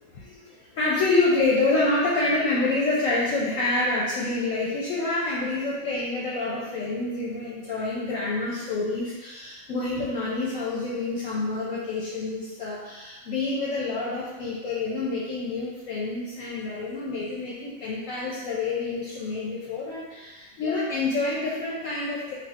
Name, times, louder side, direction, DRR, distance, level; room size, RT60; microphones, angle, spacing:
voice 1, 0.0-22.3, left 3 dB, 70° left, -6 dB, 0.9 m, -27 dB
4.2 x 2.5 x 2.4 m, 1.2 s
omnidirectional pair, 1.6 m